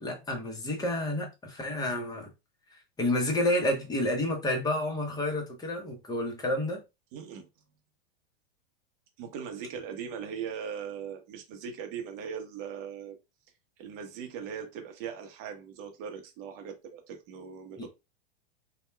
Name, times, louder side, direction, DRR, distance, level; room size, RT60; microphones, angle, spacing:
voice 1, 0.0-2.3 2.7-6.8 17.8-17.9, left 1 dB, 10° left, 0.8 m, -30 dB
voice 2, 7.1-7.5 9.2-13.2 13.8-17.9, right 7 dB, 45° right, 0.8 m, -39 dB
2.8 x 2.2 x 2.2 m
hypercardioid pair, 110°, 30 cm